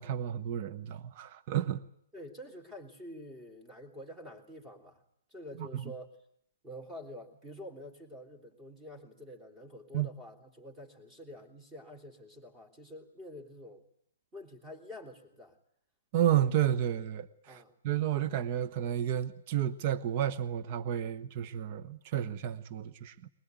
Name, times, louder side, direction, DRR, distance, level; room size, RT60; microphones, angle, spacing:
voice 1, 0.0-1.9 5.6-5.8 9.9-10.1 16.1-23.3, right 11 dB, 40° right, 1.0 m, -31 dB
voice 2, 2.1-5.0 5.3-6.2 6.6-13.8 14.3-15.6 17.5-17.7, left 1 dB, 15° right, 3.5 m, -47 dB
21.5 x 20.5 x 9.4 m
figure-of-eight pair, 125°, 0 cm